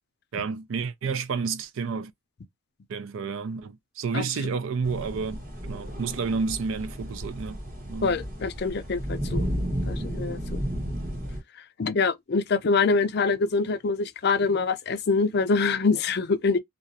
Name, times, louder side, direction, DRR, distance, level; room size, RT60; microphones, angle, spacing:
voice 1, 0.3-2.1 2.9-7.6 7.9-8.2, right 5 dB, 65° right, 0.4 m, -30 dB
sound 1, 4.8-11.4, equal, 40° right, 1.1 m, -33 dB
voice 2, 8.0-9.5 9.9-10.6 11.8-16.6, left 4 dB, 50° left, 0.4 m, -25 dB
2.4 x 2.0 x 2.7 m
head